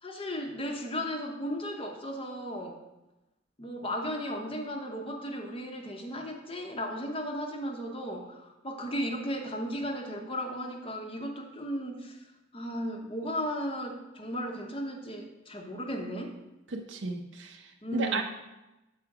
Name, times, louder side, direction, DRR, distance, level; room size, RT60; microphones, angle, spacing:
voice 1, 0.0-2.8 3.6-12.3 12.5-16.3 17.8-18.2, equal, 25° left, 3 dB, 0.8 m, -35 dB
voice 2, 16.7-18.2, right 4 dB, 60° right, 3 dB, 0.6 m, -34 dB
7.7 x 4.9 x 4.8 m, 1.0 s
head